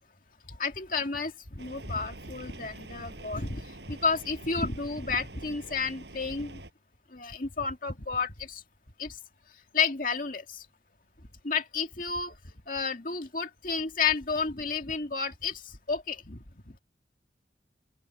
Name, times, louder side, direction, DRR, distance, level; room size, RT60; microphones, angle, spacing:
voice 1, 0.5-6.6 7.1-8.6 9.0-9.2 9.7-10.7 11.4-16.8, left 5 dB, 50° left, 2.3 m, -31 dB
Rain, 1.6-6.7, right 2 dB, 80° right, 6.5 m, -46 dB
open air
head